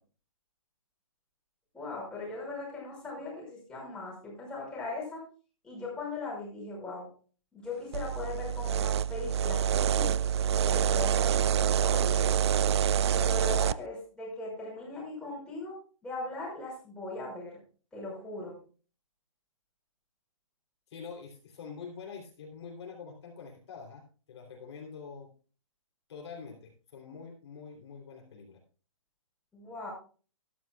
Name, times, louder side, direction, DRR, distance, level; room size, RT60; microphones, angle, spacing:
voice 1, 1.7-5.2 5.6-7.1 7.5-10.2 10.6-12.3 13.1-15.8 16.0-17.6 17.9-18.6 29.5-29.9, left 3 dB, 5° left, -5 dB, 5.7 m, -39 dB
sound 1, 7.9-13.7, right 9 dB, 50° right, 0.4 m, -26 dB
voice 2, 20.9-25.3 26.1-28.6, left 5 dB, 50° left, 1 dB, 3.2 m, -45 dB
14.0 x 12.5 x 2.3 m, 0.38 s
hypercardioid pair, 165°, 17 cm